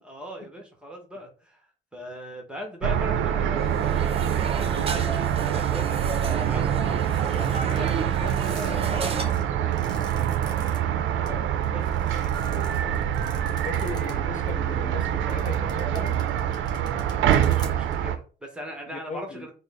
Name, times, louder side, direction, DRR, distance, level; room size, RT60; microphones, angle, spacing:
voice 1, 0.0-1.7 1.9-7.0 7.3-11.0 11.7-13.1 17.2-19.5, equal, 5° right, 0.9 m, -40 dB
sound 1, 2.8-18.2, right 10 dB, 80° right, 0.5 m, -25 dB
sound 2, 3.6-9.2, right 3 dB, 30° right, 0.7 m, -34 dB
sound 3, 7.0-10.8 11.3-11.4 11.6-14.1 14.5-14.6 15.2-17.9, left 1 dB, 20° left, 1.3 m, -47 dB
voice 2, 13.4-16.2 18.9-19.5, left 4 dB, 40° left, 0.6 m, -38 dB
3.8 x 2.0 x 3.4 m
cardioid pair, 90°, 20 cm